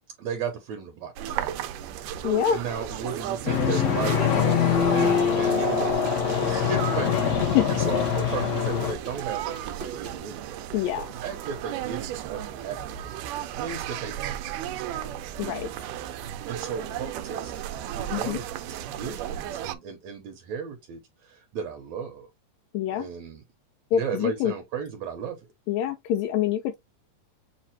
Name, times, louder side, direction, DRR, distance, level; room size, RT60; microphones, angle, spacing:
voice 1, 0.2-1.6 2.0-13.2 13.5-15.1 16.5-17.5 17.9-22.3 22.9-23.4 23.9-25.4, right 6 dB, 70° right, 1.9 m, -36 dB
sound 1, 1.2-19.8, right 11 dB, 85° right, 2.2 m, -35 dB
voice 2, 2.2-2.6 7.5-7.8 8.3-8.4 10.7-11.1 15.4-15.7 18.1-18.4 22.7-23.1 23.9-24.5 25.7-26.8, left 10 dB, 85° left, 1.6 m, -25 dB
sound 2, 3.5-8.9, left 7 dB, 60° left, 2.1 m, -23 dB
sound 3, 4.6-10.2, right 3 dB, 50° right, 0.7 m, -42 dB
7.4 x 2.5 x 2.8 m
omnidirectional pair, 3.7 m